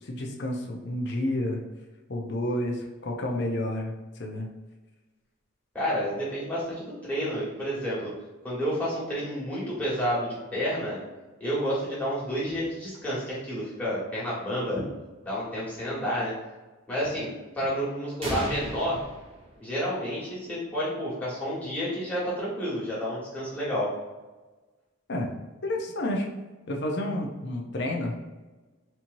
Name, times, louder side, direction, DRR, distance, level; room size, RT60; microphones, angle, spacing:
voice 1, 0.0-1.6 2.1-3.9 4.2-4.5 25.1-25.3 25.6-26.3 26.7-28.1, left 1 dB, 50° left, 0 dB, 0.6 m, -30 dB
voice 2, 5.7-8.1 8.4-11.0 11.4-14.8 15.2-16.3 16.9-19.0 19.6-23.9, equal, 5° left, -9 dB, 1.5 m, -30 dB
sound 1, 18.2-20.1, right 1 dB, 25° right, 0.6 m, -36 dB
4.2 x 3.0 x 2.6 m, 1.2 s
head